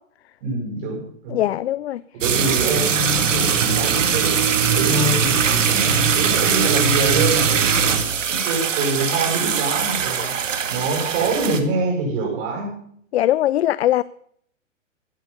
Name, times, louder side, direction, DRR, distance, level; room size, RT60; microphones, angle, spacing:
voice 1, 0.4-1.4 2.1-12.7, right 2 dB, 45° right, 7.2 m, -25 dB
voice 2, 1.3-2.0 7.9-8.0 13.1-14.0, left 13 dB, 55° left, 0.5 m, -20 dB
sound 1, 2.2-11.6, right 7 dB, 70° right, 2.1 m, -20 dB
15.0 x 12.0 x 5.5 m
hypercardioid pair, 130°, 39 cm